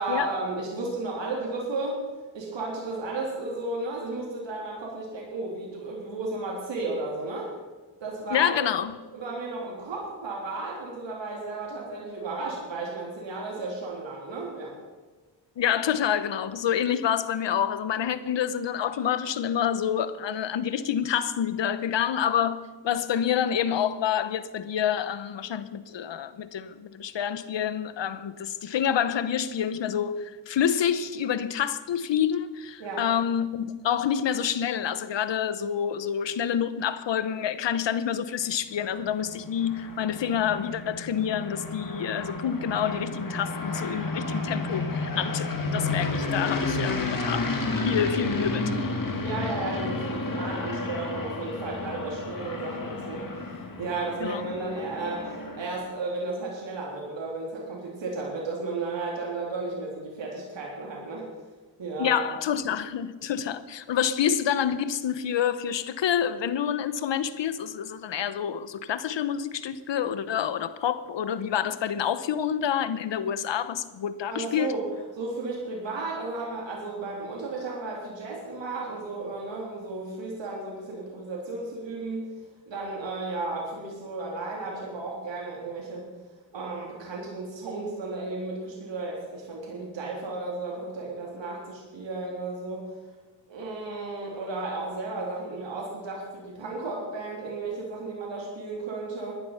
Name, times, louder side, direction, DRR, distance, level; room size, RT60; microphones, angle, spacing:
voice 1, 0.0-2.0 2.3-7.5 8.0-8.5 9.1-14.7 32.8-33.1 49.2-53.3 53.8-61.3 61.8-62.2 74.3-74.8 75.2-82.3 82.7-86.1 86.5-92.9 93.5-99.4, right 3 dB, 75° right, 3.3 m, -34 dB
voice 2, 8.3-9.0 15.6-48.7 54.2-54.5 62.0-74.7, left 9 dB, 75° left, 1.0 m, -28 dB
sound 1, 38.8-55.9, left 2 dB, 45° left, 2.5 m, -32 dB
15.0 x 10.5 x 5.8 m
cardioid pair, 55°, 44 cm